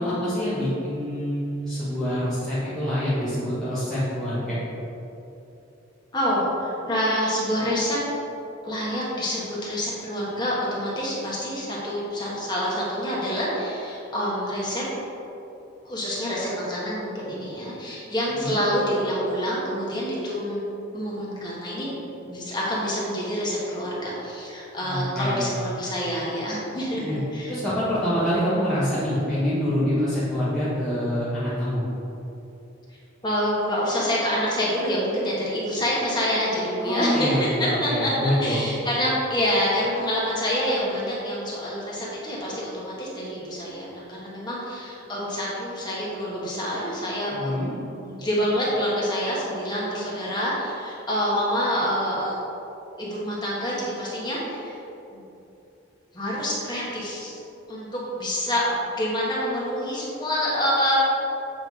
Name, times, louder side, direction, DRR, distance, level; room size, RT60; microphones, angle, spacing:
voice 1, 0.0-4.6 18.4-18.6 24.8-25.4 26.9-27.2 27.5-31.8 36.8-38.6 47.3-47.7, equal, 5° left, -13 dB, 1.2 m, -26 dB
voice 2, 6.1-8.0 8.6-14.8 15.8-20.6 20.9-27.5 33.2-52.4 53.0-54.8 55.1-55.2 56.1-57.4 57.7-61.0, equal, 20° left, -6 dB, 1.5 m, -27 dB
7.9 x 3.9 x 4.7 m, 2.9 s
head